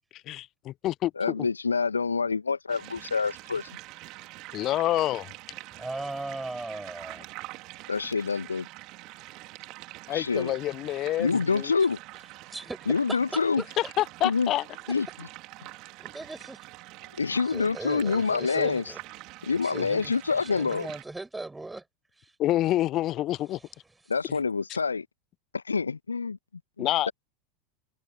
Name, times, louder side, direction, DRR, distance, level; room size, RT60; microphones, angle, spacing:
voice 1, 0.3-1.1 4.5-5.3 10.1-11.7 13.8-14.6 22.4-23.6 26.8-27.1, left 14 dB, 40° left, 0.9 m, -27 dB
voice 2, 1.2-3.8 7.9-8.7 10.1-10.6 11.2-12.0 12.9-13.6 14.2-14.5 14.9-15.3 17.2-18.8 19.5-20.9 24.1-25.1 25.5-26.4 26.8-27.1, left 5 dB, 80° left, 1.8 m, -27 dB
sound 1, 2.7-21.0, right 21 dB, 45° right, 3.0 m, -45 dB
voice 3, 5.7-7.2 12.5-13.7 16.0-16.6 17.5-19.0 19.6-21.8 22.2-22.3 23.5-23.6, right 2 dB, 10° right, 5.3 m, -38 dB
open air
figure-of-eight pair, 80°, 0 cm